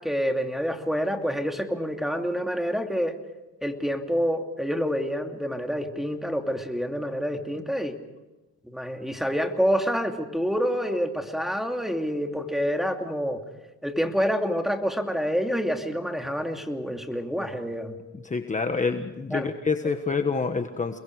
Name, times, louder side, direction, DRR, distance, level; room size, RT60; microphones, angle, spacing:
voice 1, 0.0-3.2 3.6-8.0 8.6-13.4 13.8-18.0 19.3-19.5, equal, ahead, 4 dB, 2.7 m, -27 dB
voice 2, 18.2-21.0, left 4 dB, 25° left, 7 dB, 1.3 m, -27 dB
29.0 x 21.5 x 4.9 m, 1.1 s
cardioid pair, 90°, 30 cm